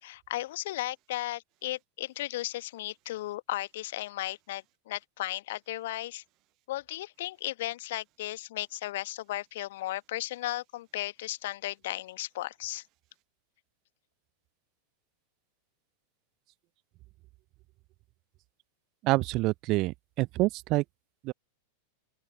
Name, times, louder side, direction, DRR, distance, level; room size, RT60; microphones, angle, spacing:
voice 1, 0.0-6.2 6.7-12.9, left 16 dB, 55° left, 1.3 m, -35 dB
voice 2, 19.0-20.8 21.2-21.3, right 20 dB, 40° right, 0.7 m, -27 dB
open air
figure-of-eight pair, 90°, 0 cm